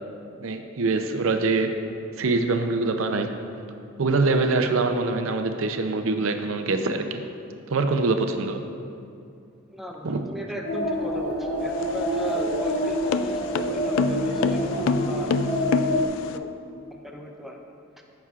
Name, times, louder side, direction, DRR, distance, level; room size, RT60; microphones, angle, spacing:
voice 1, 0.4-1.8 2.2-3.3 4.0-7.2 7.7-8.6 10.0-10.3 14.7-14.9, right 3 dB, 80° right, 6 dB, 0.6 m, -24 dB
voice 2, 9.7-16.5 16.9-17.6, equal, ahead, 1 dB, 0.6 m, -37 dB
sound 1, 10.6-16.1, equal, 50° left, 1.4 m, -27 dB
sound 2, 11.6-16.4, left 4 dB, 75° left, 0.3 m, -27 dB
15.0 x 6.0 x 2.4 m, 2.5 s
head